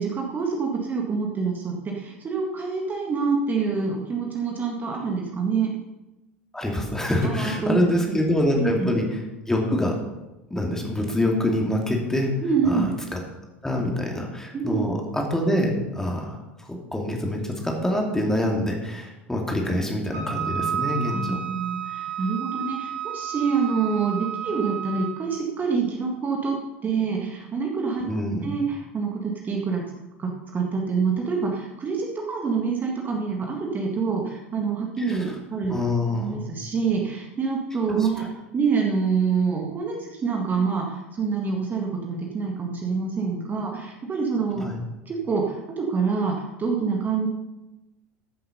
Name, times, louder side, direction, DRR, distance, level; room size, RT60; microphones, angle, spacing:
voice 1, 0.0-5.7 7.2-8.2 8.6-8.9 12.4-12.9 14.5-14.8 21.1-26.6 26.8-28.1 28.4-29.8 30.2-35.7 36.1-38.3 38.5-44.6 45.1-47.3, right 5 dB, 25° right, 0 dB, 1.9 m, -26 dB
voice 2, 6.5-9.2 9.5-10.0 10.5-12.3 12.6-13.2 13.6-21.4 28.1-28.5 35.1-35.2 35.7-36.4 44.6-44.8, left 1 dB, 5° left, 0 dB, 2.6 m, -25 dB
Wind instrument woodwind instrument, 20.1-25.3, right 8 dB, 55° right, 2.0 m, -31 dB
14.5 x 7.7 x 5.4 m, 1.0 s
figure-of-eight pair, 75°, 7 cm